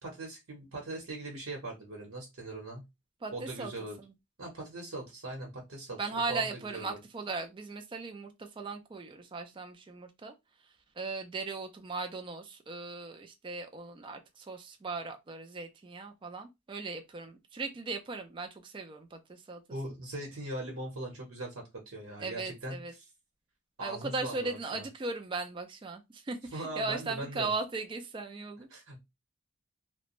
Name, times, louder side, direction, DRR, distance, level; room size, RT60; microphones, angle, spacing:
voice 1, 0.0-2.8 3.3-4.0 4.4-6.0 6.3-7.0 19.7-23.1 23.8-24.9 26.5-27.5 28.7-29.0, right 2 dB, 80° right, 0.9 m, -40 dB
voice 2, 3.2-3.7 4.0-4.1 6.0-10.3 11.0-19.6 22.2-22.9 23.8-28.7, right 3 dB, 25° right, 0.3 m, -38 dB
2.5 x 2.1 x 2.9 m
head